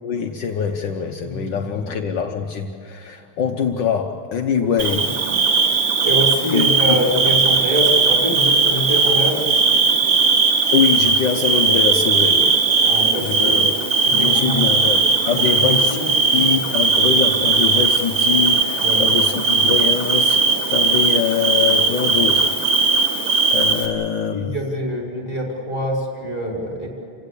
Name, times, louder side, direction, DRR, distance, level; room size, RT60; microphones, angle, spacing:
voice 1, 0.0-5.1 6.5-7.0 10.7-12.6 13.2-13.7 14.1-16.0 16.3-20.4 20.7-22.6 23.5-24.5, left 7 dB, 60° left, 4 dB, 1.5 m, -23 dB
voice 2, 1.2-1.9 5.3-5.4 6.0-9.4 12.8-13.6 14.0-14.8 15.4-16.1 18.8-19.1 24.3-26.9, equal, 20° left, -1 dB, 5.2 m, -25 dB
Bird / Cricket, 4.8-23.9, right 4 dB, 90° right, 2.7 m, -18 dB
29.0 x 17.0 x 8.3 m, 2.5 s
omnidirectional pair, 2.4 m